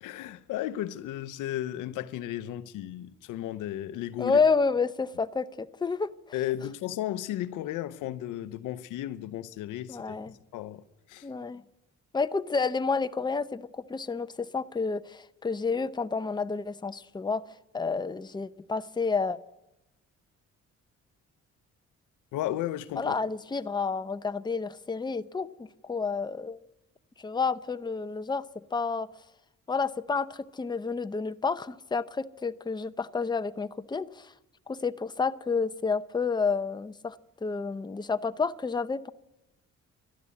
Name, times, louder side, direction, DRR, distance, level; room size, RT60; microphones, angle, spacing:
voice 1, 0.0-4.4 6.3-10.2 10.5-10.8 11.1-11.3 22.3-23.2, left 13 dB, 90° left, 0.8 m, -34 dB
voice 2, 4.2-6.1 9.9-10.3 11.2-11.6 12.1-17.4 17.7-19.4 23.0-26.6 27.2-28.4 28.7-29.1 29.7-34.3 34.7-39.1, left 4 dB, 15° left, 0.6 m, -30 dB
13.0 x 11.5 x 8.3 m
cardioid pair, 90°, 30 cm